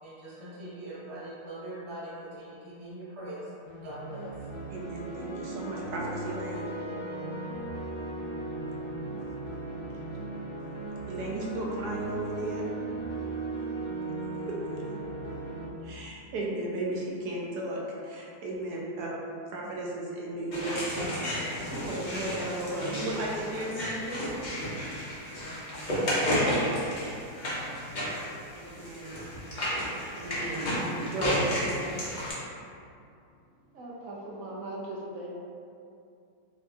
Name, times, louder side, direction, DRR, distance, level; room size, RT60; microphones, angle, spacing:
voice 1, 0.0-3.5 3.8-4.3, right 1 dB, 25° right, -9 dB, 0.6 m, -41 dB
sound 1, 3.7-15.7, right 2 dB, 75° left, 1.3 m, -37 dB
voice 2, 4.7-6.7 11.1-12.6 14.5-14.6 15.9-17.8 18.1-19.2 19.5-21.3 21.9-24.2 28.6-29.1 30.2-31.9, right 1 dB, 90° right, -3 dB, 1.2 m, -35 dB
sound 2, 20.5-32.3, equal, 50° left, 0.6 m, -32 dB
voice 3, 33.7-35.4, right 1 dB, 65° right, -4 dB, 0.9 m, -39 dB
4.4 x 2.5 x 2.4 m, 2.5 s
omnidirectional pair, 1.7 m